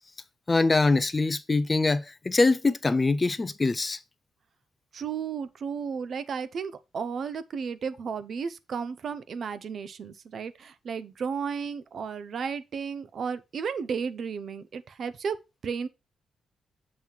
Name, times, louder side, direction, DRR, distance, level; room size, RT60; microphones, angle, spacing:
voice 1, 0.5-4.0, left 3 dB, 20° left, 0.3 m, -23 dB
voice 2, 4.9-15.4 15.6-15.9, right 6 dB, 45° right, 0.5 m, -33 dB
7.4 x 3.0 x 5.3 m
wide cardioid pair, 175°, 0 cm